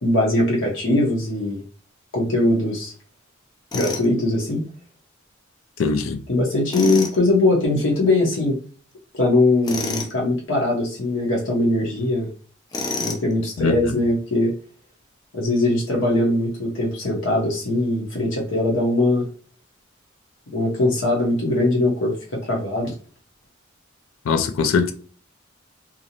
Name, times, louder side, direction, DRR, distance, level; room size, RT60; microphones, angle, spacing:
voice 1, 0.0-1.6 2.1-2.9 3.7-4.6 6.3-8.6 9.1-12.3 13.0-14.5 15.3-19.3 20.5-22.9, left 2 dB, 65° left, 0.8 m, -21 dB
Tools, 3.7-4.1 6.7-7.2 9.6-10.1 12.7-13.3, left 3 dB, 20° left, 0.3 m, -28 dB
voice 2, 5.8-6.2 13.6-13.9 24.3-24.9, left 5 dB, 85° left, 0.4 m, -21 dB
2.5 x 2.0 x 2.8 m
head